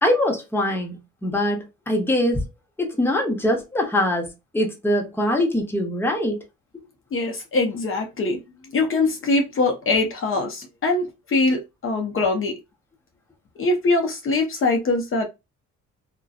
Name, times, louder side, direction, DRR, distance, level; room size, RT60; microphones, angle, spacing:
voice 1, 0.0-2.4 2.8-6.4, left 1 dB, 5° left, 0.8 m, -23 dB
voice 2, 7.1-8.4 8.7-12.5 13.6-15.2, left 3 dB, 45° left, 0.7 m, -22 dB
2.6 x 2.2 x 2.4 m
cardioid pair, 90°, 30 cm